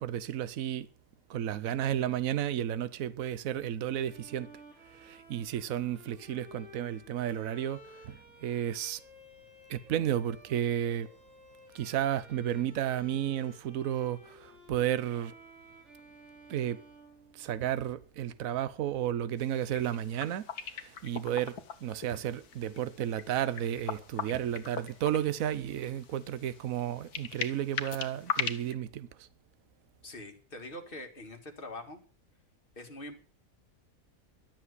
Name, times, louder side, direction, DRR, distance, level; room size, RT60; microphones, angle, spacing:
voice 1, 0.0-0.9 1.3-4.5 4.9-9.0 9.7-11.1 11.7-15.3 16.5-16.8 17.3-20.5 20.8-21.5 21.8-29.3, right 11 dB, 65° right, 1.2 m, -32 dB
Bowed string instrument, 4.0-17.9, equal, 50° right, 4.1 m, -55 dB
sound 1, 19.4-28.7, left 7 dB, 90° left, 1.7 m, -40 dB
voice 2, 30.0-32.0 32.8-33.2, left 1 dB, 35° left, 2.2 m, -44 dB
12.0 x 7.6 x 9.6 m
omnidirectional pair, 1.6 m